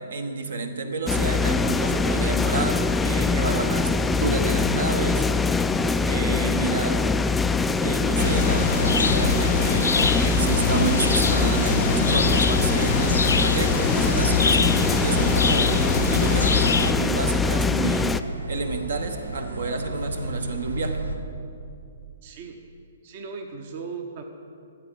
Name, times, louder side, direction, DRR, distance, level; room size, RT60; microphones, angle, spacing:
voice 1, 0.0-5.2 6.0-7.0 7.8-15.8 16.1-18.1 18.5-21.1, right 3 dB, 60° right, 7 dB, 1.1 m, -30 dB
sound 1, 1.1-18.2, left 4 dB, 5° left, 0.3 m, -23 dB
sound 2, 8.2-16.9, left 4 dB, 65° left, 0.5 m, -24 dB
sound 3, 12.0-21.2, right 1 dB, 85° right, 1.2 m, -35 dB
voice 2, 22.2-22.6 23.0-24.2, right 5 dB, 40° right, 4 dB, 0.9 m, -37 dB
13.5 x 8.1 x 6.2 m, 2.5 s
figure-of-eight pair, 120°, 0 cm